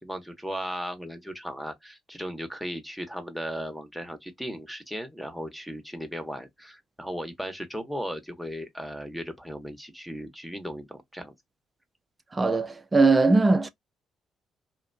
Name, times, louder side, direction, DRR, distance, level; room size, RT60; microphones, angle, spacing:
voice 1, 0.0-11.3, equal, ahead, 1.0 m, -36 dB
voice 2, 12.3-13.7, right 3 dB, 25° right, 0.6 m, -20 dB
2.6 x 2.2 x 2.6 m
hypercardioid pair, 55°, 0 cm